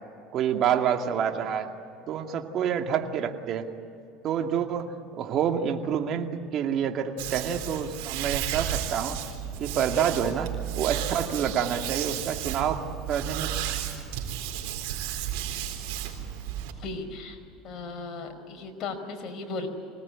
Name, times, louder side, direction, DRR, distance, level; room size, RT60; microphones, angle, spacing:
voice 1, 0.3-1.7 2.1-3.7 4.2-9.2 9.6-12.8 13.1-13.5, right 8 dB, 50° right, 4 dB, 2.3 m, -28 dB
sound 1, 7.2-16.7, right 10 dB, 80° right, 3.9 m, -33 dB
voice 2, 16.8-17.4 17.6-19.7, left 3 dB, 45° left, 4 dB, 5.1 m, -36 dB
25.0 x 19.0 x 9.8 m, 2.7 s
supercardioid pair, 120°, 0 cm